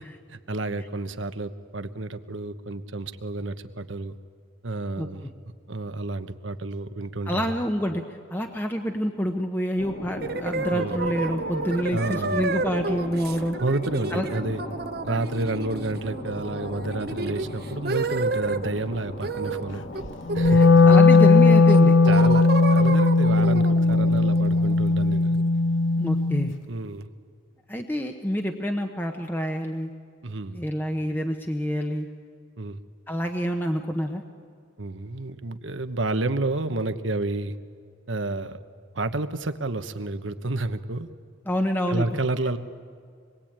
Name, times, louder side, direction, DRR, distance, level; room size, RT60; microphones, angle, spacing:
voice 1, 0.3-4.2 4.6-5.3 5.7-7.5 10.7-11.0 11.9-12.4 13.6-14.6 15.0-19.8 20.3-20.9 22.1-25.4 26.7-27.1 30.2-30.6 32.6-32.8 34.8-37.6 38.1-38.6 38.9-41.1 41.9-42.6, right 2 dB, 75° right, 10 dB, 1.2 m, -30 dB
voice 2, 7.3-13.6 14.1-14.3 20.4-22.0 26.0-26.5 27.7-29.9 30.5-32.1 33.1-34.2 41.5-42.0, equal, 10° left, 4 dB, 0.9 m, -27 dB
sound 1, 9.8-21.7, left 1 dB, 50° left, 1.8 m, -38 dB
sound 2, 10.2-18.7 19.2-19.6 19.9-21.2 21.7-25.4, right 3 dB, 50° right, 0.9 m, -31 dB
Wind instrument woodwind instrument, 20.3-26.5, left 3 dB, 75° left, 0.9 m, -17 dB
26.0 x 21.5 x 8.9 m, 2.2 s
head